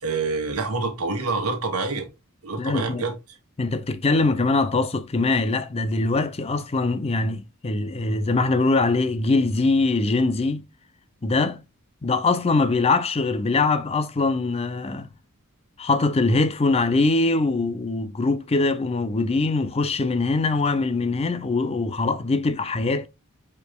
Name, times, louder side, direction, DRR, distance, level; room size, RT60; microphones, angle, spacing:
voice 1, 0.0-2.1 2.4-3.2, right 3 dB, 90° right, 1.6 m, -27 dB
voice 2, 2.6-3.0 3.6-10.7 11.2-11.6 12.0-15.1 15.8-23.1, left 3 dB, 30° left, 0.5 m, -22 dB
5.1 x 4.6 x 2.2 m
head